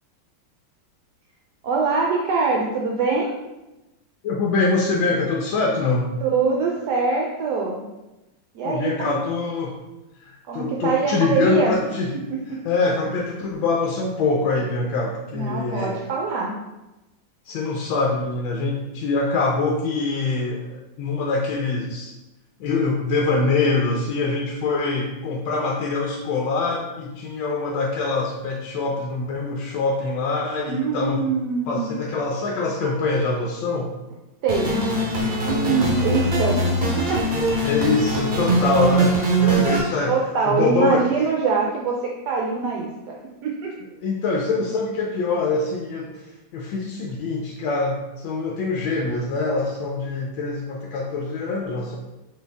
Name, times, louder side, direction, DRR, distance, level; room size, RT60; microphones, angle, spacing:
voice 1, 1.6-3.3 6.2-7.8 8.5-9.2 10.5-11.8 12.5-12.6 15.3-16.5 30.7-31.9 34.4-34.8 35.4-36.6 37.0-37.2 39.4-39.8 40.1-43.2 43.4-43.7, right 4 dB, 70° right, -1 dB, 1.0 m, -23 dB
voice 2, 4.2-6.1 8.6-9.8 10.2-12.1 12.6-15.9 17.4-22.1 22.6-31.2 31.7-33.9 37.6-40.1 40.5-41.1 44.0-52.0, left 3 dB, 85° left, -1 dB, 1.4 m, -24 dB
sound 1, 34.5-39.8, right 1 dB, 40° right, 0.9 m, -22 dB
4.4 x 3.3 x 3.4 m, 1.0 s
omnidirectional pair, 2.1 m